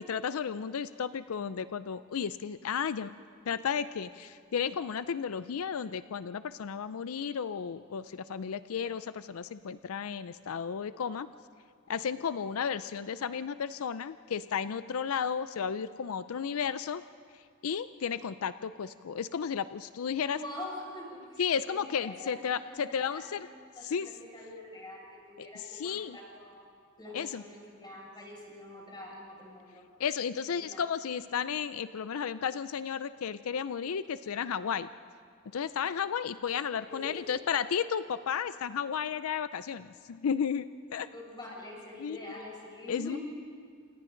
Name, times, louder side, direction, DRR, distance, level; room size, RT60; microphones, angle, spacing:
voice 1, 0.0-3.1 3.5-11.3 11.9-17.0 17.3-20.4 21.4-23.5 23.8-24.1 25.4-26.2 27.1-27.4 30.0-34.9 35.5-41.1 42.0-42.2 42.9-43.2, left 7 dB, 85° left, 13 dB, 0.5 m, -33 dB
voice 2, 20.3-23.5 23.8-26.7 27.0-29.8 30.6-30.8 36.9-37.3 41.1-43.2, left 1 dB, 20° left, -3 dB, 6.2 m, -45 dB
29.0 x 28.0 x 3.9 m, 2.1 s
head